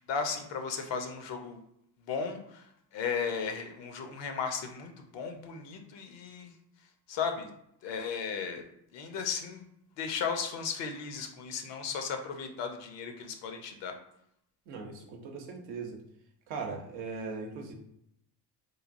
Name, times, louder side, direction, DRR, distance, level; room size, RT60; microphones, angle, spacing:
voice 1, 0.0-1.6 2.0-6.5 7.1-7.5 7.8-8.6 8.9-9.7 10.0-13.9, left 6 dB, 70° left, 5 dB, 0.7 m, -35 dB
voice 2, 14.7-16.0 16.5-17.7, right 4 dB, 85° right, 2 dB, 0.7 m, -39 dB
3.3 x 2.2 x 2.5 m, 0.75 s
supercardioid pair, 60°, 45 cm